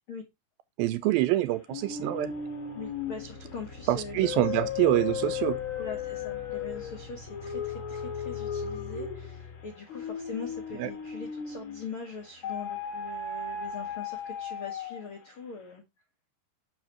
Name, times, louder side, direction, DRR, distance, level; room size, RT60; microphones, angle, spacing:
voice 1, 0.8-2.3 3.9-5.6 10.8-10.9, right 15 dB, 80° right, 2.3 m, -26 dB
sound 1, 1.7-11.9 12.4-15.2, left 6 dB, 45° left, 1.7 m, -36 dB
voice 2, 2.7-4.6 5.8-15.8, left 4 dB, 85° left, 1.1 m, -42 dB
7.1 x 6.3 x 3.0 m
omnidirectional pair, 4.4 m